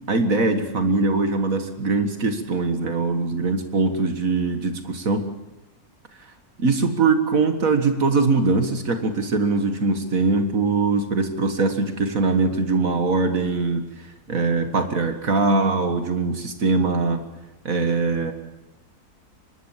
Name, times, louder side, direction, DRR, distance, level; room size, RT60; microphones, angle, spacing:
voice 1, 0.1-5.3 6.6-17.2 17.7-18.3, right 3 dB, 65° right, 7 dB, 2.0 m, -22 dB
25.0 x 20.5 x 7.4 m, 0.98 s
omnidirectional pair, 1.6 m